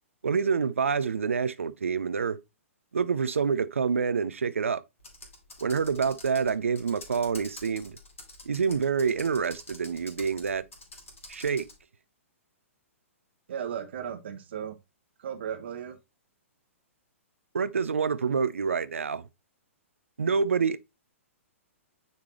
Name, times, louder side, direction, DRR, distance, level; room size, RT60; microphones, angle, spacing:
voice 1, 0.2-2.4 2.9-4.8 5.6-8.0 8.4-10.6 11.3-11.7 17.5-19.3 20.2-20.8, right 5 dB, 70° right, 0.5 m, -27 dB
Computer keyboard, 5.0-11.8, left 2 dB, 65° left, 2.4 m, -47 dB
voice 2, 13.5-14.8 15.2-16.0, right 8 dB, 50° right, 1.1 m, -35 dB
9.1 x 3.6 x 2.9 m
figure-of-eight pair, 115°, 7 cm